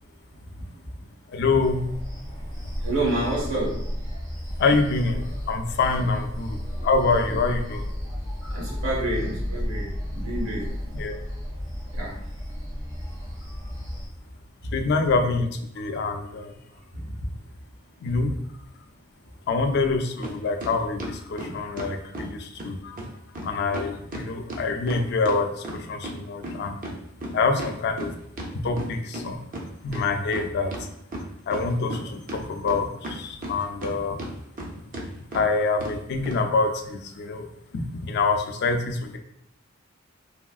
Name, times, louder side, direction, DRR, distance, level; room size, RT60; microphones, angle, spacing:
voice 1, 1.3-1.8 4.6-6.5 6.8-7.8 11.0-11.1 14.7-15.5 15.8-16.4 18.0-18.3 19.5-21.0 21.3-22.3 22.6-22.8 23.5-25.5 25.9-26.7 27.3-28.1 28.6-29.0 29.2-29.3 29.8-30.7 31.5-32.2 32.5-32.9 33.5-34.2 35.3-37.4 38.1-39.2, left 3 dB, 55° left, 5 dB, 0.4 m, -25 dB
sound 1, 1.6-14.1, equal, 70° right, 1.5 m, -33 dB
voice 2, 2.8-3.8 6.7-6.9 8.1-10.7 11.9-12.2 16.9-17.1, right 1 dB, 85° right, -5 dB, 1.2 m, -29 dB
sound 2, 20.2-20.3 20.6-22.3 22.6-22.7 23.0-23.1 23.3-23.5 23.7-26.2 26.4-29.2 29.5-29.6 29.9-30.8 31.1-32.0 32.3-33.9 34.2-34.7 34.9-35.1 35.3-35.4 35.8-35.9 36.3-36.4, right 1 dB, 40° right, 0.5 m, -34 dB
3.4 x 2.4 x 2.3 m, 0.74 s
head